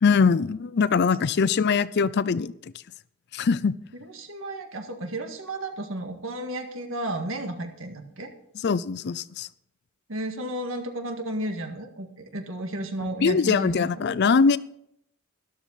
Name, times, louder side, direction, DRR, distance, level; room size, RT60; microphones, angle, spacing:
voice 1, 0.0-2.7 3.3-3.7 8.6-9.5 13.2-14.6, left 5 dB, 50° left, 18 dB, 0.4 m, -22 dB
voice 2, 4.1-8.3 10.1-12.1 12.3-14.0, right 1 dB, 65° right, 5 dB, 1.9 m, -33 dB
13.0 x 12.5 x 4.1 m, 0.72 s
head